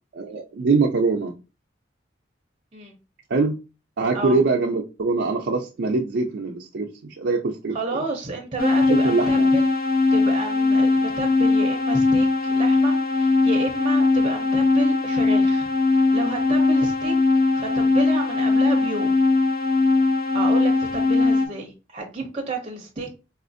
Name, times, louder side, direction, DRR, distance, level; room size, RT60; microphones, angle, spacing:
voice 1, 0.1-1.3 3.3-3.6 4.0-8.0 8.9-9.5, right 3 dB, 70° right, 0.5 m, -23 dB
voice 2, 7.7-9.7 10.1-15.7 15.9-17.2 17.5-19.1 20.3-23.1, right 2 dB, 30° right, 0.6 m, -31 dB
sound 1, 8.6-21.5, left 3 dB, 50° left, 0.7 m, -20 dB
4.2 x 2.4 x 2.5 m
head